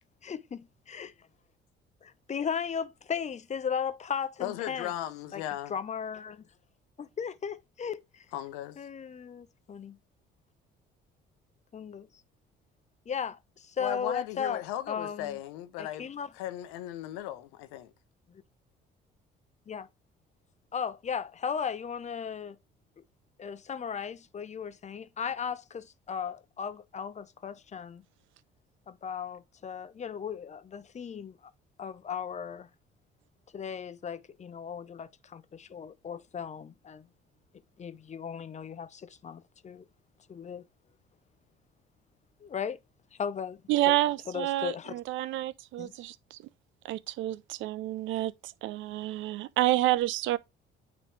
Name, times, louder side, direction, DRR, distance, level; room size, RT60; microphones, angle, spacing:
voice 1, 0.2-1.1 2.0-4.9 5.3-5.4 5.7-6.4 7.0-8.2 8.8-10.0 11.7-12.1 13.1-15.4 15.8-16.3 18.3-18.4 19.7-19.9 20.7-22.6 23.4-28.0 28.9-31.4 31.8-32.7 33.5-37.1 37.8-39.9 40.3-40.6 42.4-42.8 43.2-43.6 43.9-44.0 44.3-44.9 45.8-45.9, left 7 dB, 35° left, 0.7 m, -36 dB
voice 2, 4.4-5.8 8.3-8.8 13.8-16.1 16.3-17.9, left 13 dB, 90° left, 0.8 m, -37 dB
voice 3, 43.7-46.4 46.8-50.4, right 16 dB, 70° right, 0.5 m, -29 dB
9.0 x 3.1 x 3.3 m
supercardioid pair, 70°, 21 cm